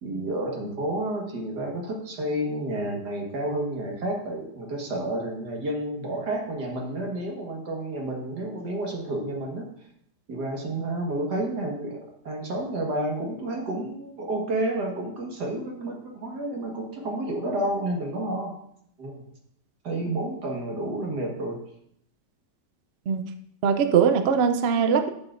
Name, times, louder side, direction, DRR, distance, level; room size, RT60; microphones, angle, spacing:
voice 1, 0.0-9.7 10.3-12.0 12.2-18.5 19.0-19.2 19.8-21.6, right 1 dB, 85° right, 0 dB, 2.2 m, -30 dB
voice 2, 23.6-25.1, right 7 dB, 60° right, 8 dB, 0.6 m, -21 dB
10.5 x 7.0 x 2.6 m, 0.70 s
omnidirectional pair, 1.7 m